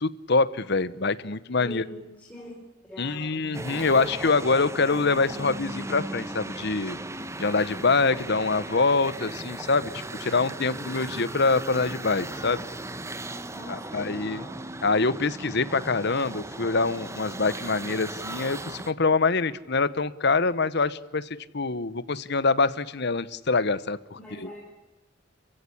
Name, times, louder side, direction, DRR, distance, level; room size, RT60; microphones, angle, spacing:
voice 1, 0.0-1.8 3.0-7.0 7.4-12.6 13.7-14.4 14.8-21.3 21.5-24.5, left 4 dB, 60° left, 16 dB, 1.1 m, -25 dB
voice 2, 1.6-2.5 2.9-3.6 13.5-14.6 24.1-24.7, left 1 dB, 5° left, -4 dB, 4.8 m, -43 dB
sound 1, 3.5-18.9, right 2 dB, 15° right, 1.0 m, -37 dB
27.5 x 16.0 x 10.0 m, 1.0 s
head